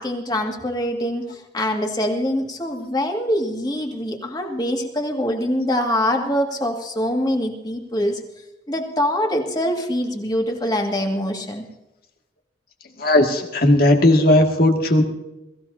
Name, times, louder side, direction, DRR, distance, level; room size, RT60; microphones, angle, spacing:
voice 1, 0.0-8.2 8.7-11.7, equal, 20° left, 2 dB, 2.1 m, -24 dB
voice 2, 13.0-15.0, left 1 dB, 55° left, 2 dB, 2.2 m, -16 dB
22.5 x 15.5 x 2.8 m, 0.96 s
head